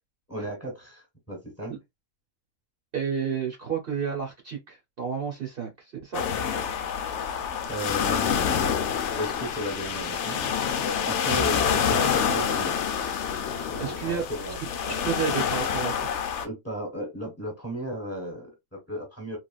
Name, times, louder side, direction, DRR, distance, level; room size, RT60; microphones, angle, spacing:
voice 1, 0.3-1.7 7.7-8.8 9.2-10.4 11.0-12.8 13.7-15.0 15.3-15.4 16.4-19.4, equal, 10° left, 1.2 m, -35 dB
voice 2, 2.9-6.2 13.8-14.2 15.0-16.1, right 7 dB, 50° right, 0.9 m, -31 dB
sound 1, 6.1-16.5, left 7 dB, 65° left, 0.8 m, -27 dB
3.2 x 2.4 x 2.3 m
omnidirectional pair, 1.4 m